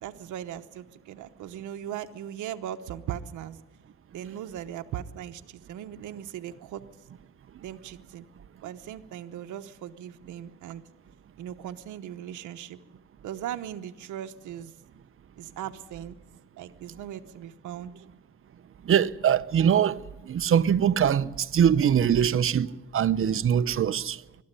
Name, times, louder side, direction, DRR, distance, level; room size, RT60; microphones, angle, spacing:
voice 1, 0.0-3.6 4.1-6.8 7.6-8.3 8.6-10.8 11.4-12.8 13.2-14.7 15.4-16.2 16.6-18.0, right 10 dB, 80° right, 1.0 m, -38 dB
voice 2, 18.9-20.0 20.3-22.7 22.9-24.2, right 8 dB, 45° right, 0.8 m, -22 dB
21.0 x 13.0 x 10.0 m
cardioid pair, 85°, 30 cm